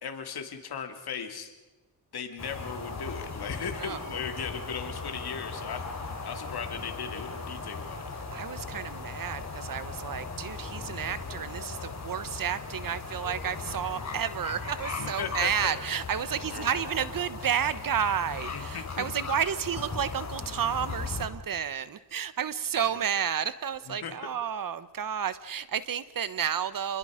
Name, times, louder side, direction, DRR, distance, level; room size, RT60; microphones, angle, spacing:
voice 1, 0.0-1.5 2.1-8.0 15.0-15.8 16.5-16.7 18.5-19.2 22.7-23.0 23.9-24.1, left 7 dB, 70° left, 6 dB, 2.8 m, -37 dB
sound 1, 2.4-21.3, left 4 dB, 40° left, 4.8 m, -38 dB
voice 2, 8.3-27.0, right 8 dB, 55° right, 15 dB, 1.2 m, -31 dB
28.5 x 21.5 x 5.1 m, 1.2 s
cardioid pair, 100°, 40 cm